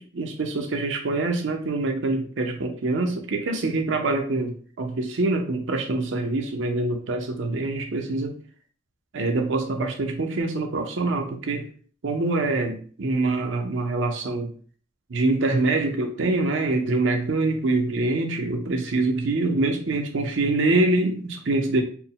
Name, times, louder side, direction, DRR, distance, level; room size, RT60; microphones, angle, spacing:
voice 1, 0.0-8.4 9.1-11.7 12.0-14.5 15.1-21.8, right 2 dB, 75° right, 3 dB, 0.6 m, -25 dB
4.3 x 2.1 x 3.6 m, 0.43 s
head